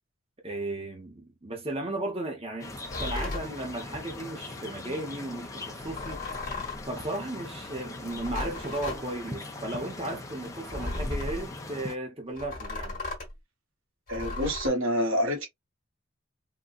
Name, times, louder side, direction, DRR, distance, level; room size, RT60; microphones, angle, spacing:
voice 1, 0.4-2.7 3.0-6.2 6.9-13.0, right 2 dB, 25° right, 0.8 m, -35 dB
sound 1, 2.6-11.9, left 2 dB, 15° left, 0.7 m, -41 dB
sound 2, 2.8-3.5 5.8-6.9 8.0-9.0 10.7-11.4 12.3-13.3 14.1-14.7, left 2 dB, 40° left, 1.3 m, -35 dB
voice 2, 14.1-15.5, equal, 75° right, 1.4 m, -27 dB
3.8 x 2.3 x 2.3 m
head